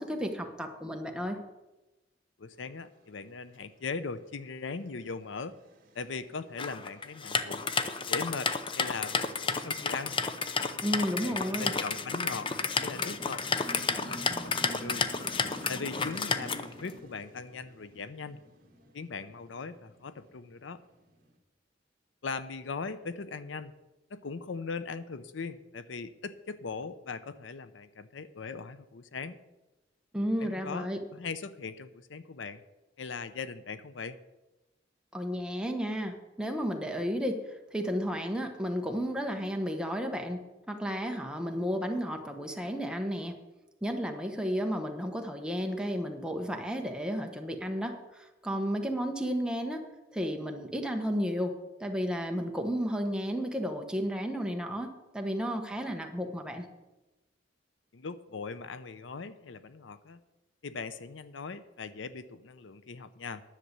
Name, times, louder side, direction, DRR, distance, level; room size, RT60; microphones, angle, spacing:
voice 1, 0.0-1.4 10.8-11.7 30.1-31.0 35.1-37.4 37.7-43.4 43.8-49.8 50.1-56.7, equal, 5° right, 3 dB, 1.1 m, -33 dB
voice 2, 2.4-5.6 5.9-7.7 8.1-10.2 11.2-12.5 12.8-15.1 15.7-18.4 18.9-20.8 22.2-23.7 24.1-29.4 30.4-32.6 33.0-34.2 57.9-60.2 60.6-63.4, left 4 dB, 80° left, 13 dB, 0.6 m, -40 dB
sound 1, 4.6-21.4, equal, 50° right, 1.9 m, -49 dB
sound 2, 6.6-16.9, left 5 dB, 25° left, 0.6 m, -31 dB
10.5 x 6.7 x 8.1 m, 1.0 s
head